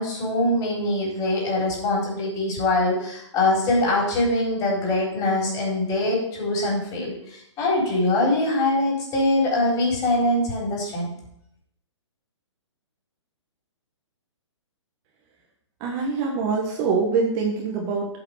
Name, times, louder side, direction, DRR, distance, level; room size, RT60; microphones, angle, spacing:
voice 1, 0.0-11.1, left 2 dB, 25° left, -3 dB, 3.9 m, -23 dB
voice 2, 15.8-18.1, right 5 dB, 30° right, 0 dB, 1.4 m, -24 dB
8.2 x 5.6 x 6.5 m, 0.72 s
figure-of-eight pair, 125°, 15 cm